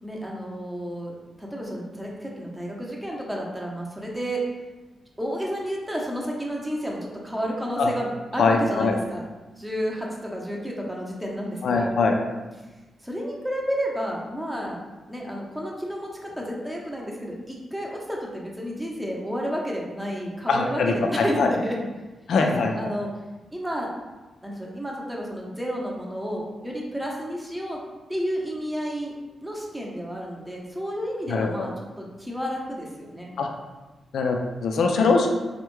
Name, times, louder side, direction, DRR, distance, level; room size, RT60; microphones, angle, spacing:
voice 1, 0.0-4.4 5.2-9.2 9.6-11.9 13.0-14.8 15.1-21.8 22.4-23.1 23.5-23.9 24.4-27.8 28.1-29.1 29.4-33.3, equal, 5° right, -2 dB, 0.6 m, -31 dB
voice 2, 8.4-8.9 11.6-12.2 20.5-21.5 22.3-22.7 31.3-31.7 33.4-33.5 34.1-35.3, left 4 dB, 75° left, 2 dB, 0.3 m, -22 dB
3.4 x 2.1 x 3.0 m, 1.2 s
cardioid pair, 90°, 0 cm